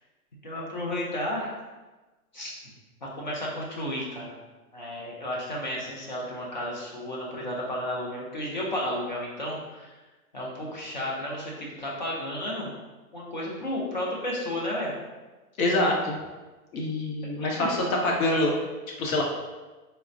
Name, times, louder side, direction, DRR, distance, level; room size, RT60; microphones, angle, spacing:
voice 1, 0.4-1.6 2.3-2.5 3.0-4.3 4.7-9.9 10.3-12.7 13.1-14.9 17.4-17.7, left 1 dB, 35° left, -4 dB, 0.4 m, -32 dB
voice 2, 15.6-16.2 16.7-18.5 19.0-19.2, left 2 dB, 65° left, -1 dB, 0.8 m, -25 dB
4.1 x 2.0 x 2.4 m, 1.2 s
hypercardioid pair, 160°, 45 cm